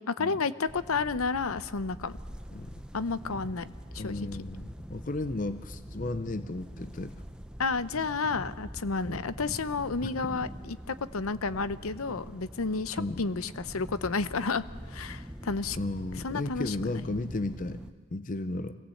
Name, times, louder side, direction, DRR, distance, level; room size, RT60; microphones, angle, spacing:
voice 1, 0.1-2.2 2.9-3.7 3.9-4.3 7.6-15.8 16.2-16.9, left 4 dB, 85° left, 14 dB, 0.8 m, -31 dB
sound 1, 0.7-17.9, equal, 5° right, 0.7 m, -44 dB
voice 2, 4.0-7.2 9.0-9.2 10.0-10.1 13.0-13.2 15.8-17.8 18.1-18.8, left 2 dB, 40° left, 10 dB, 0.6 m, -34 dB
25.5 x 17.5 x 7.8 m, 1.5 s
head